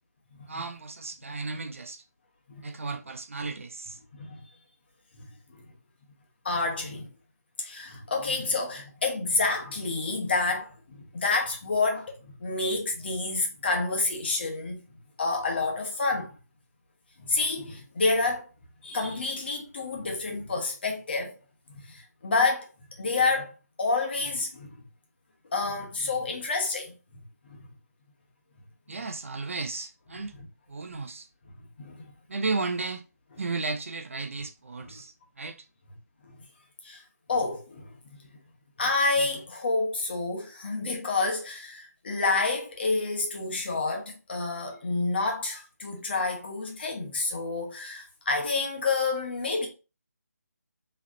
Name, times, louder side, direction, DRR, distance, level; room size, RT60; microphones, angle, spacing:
voice 1, 0.5-2.0 2.6-4.0 28.9-30.3 30.7-31.3 32.3-33.0 33.4-35.7, right 3 dB, 50° right, 0.6 m, -34 dB
voice 2, 6.4-7.1 7.6-10.7 11.1-12.1 12.4-14.8 15.2-16.3 17.2-18.4 18.8-21.3 21.9-22.7 23.0-23.5 23.8-24.7 25.5-27.2 27.5-27.6 31.8-32.1 36.8-37.0 37.3-37.9 38.8-49.7, left 3 dB, 35° left, 1.3 m, -28 dB
4.7 x 3.3 x 2.7 m
figure-of-eight pair, 155°, 9 cm